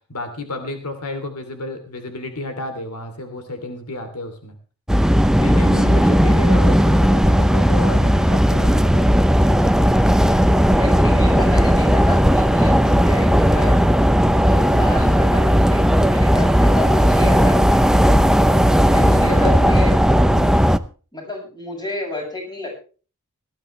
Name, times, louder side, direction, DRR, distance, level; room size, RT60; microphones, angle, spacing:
voice 1, 0.1-4.6 5.4-9.3 18.9-20.7, left 1 dB, 85° left, 7 dB, 2.9 m, -32 dB
sound 1, 4.9-20.8, equal, 5° right, 0.6 m, -15 dB
voice 2, 10.7-13.8 14.4-17.9 18.9-19.9 21.1-22.9, left 1 dB, 20° left, 1 dB, 7.0 m, -31 dB
19.0 x 14.0 x 3.2 m, 0.37 s
head